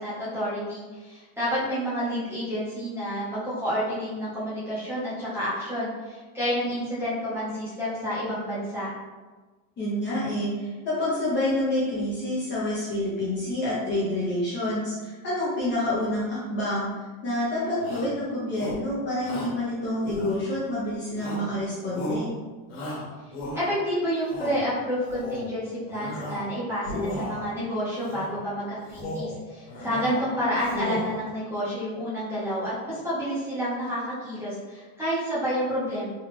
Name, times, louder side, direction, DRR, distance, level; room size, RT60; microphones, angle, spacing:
voice 1, 0.0-8.9 23.5-36.1, equal, 5° right, -11 dB, 0.8 m, -29 dB
voice 2, 9.8-16.9 17.2-22.3 29.8-30.3, left 1 dB, 25° left, -8 dB, 0.7 m, -28 dB
Shout, 17.8-18.2 18.5-18.9 19.2-19.6 20.0-20.7 21.2-21.6 21.9-22.3 22.7-23.8 24.2-24.6 25.0-25.5 25.9-26.5 26.8-27.5 28.0-28.4 28.8-29.3 29.7-30.2 30.5-31.2, left 1 dB, 65° left, 1.2 m, -34 dB
3.2 x 2.3 x 3.3 m, 1.3 s
cardioid pair, 165°, 42 cm